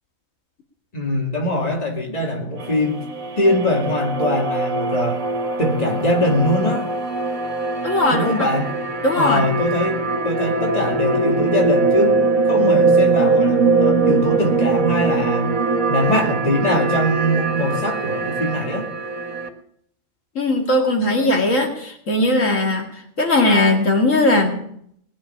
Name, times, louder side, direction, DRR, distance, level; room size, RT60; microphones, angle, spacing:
voice 1, 0.9-3.0 3.4-5.2 5.6-6.9 8.1-8.8 9.1-12.2 12.4-15.6 15.9-18.9, left 1 dB, 30° left, 1 dB, 2.5 m, -22 dB
sound 1, 2.6-19.5, right 3 dB, 70° right, 2.1 m, -21 dB
voice 2, 7.8-8.5 9.0-9.5 20.4-22.9 23.2-24.6, left 2 dB, 65° left, 2 dB, 2.6 m, -18 dB
19.0 x 7.0 x 9.9 m, 0.68 s
omnidirectional pair, 1.4 m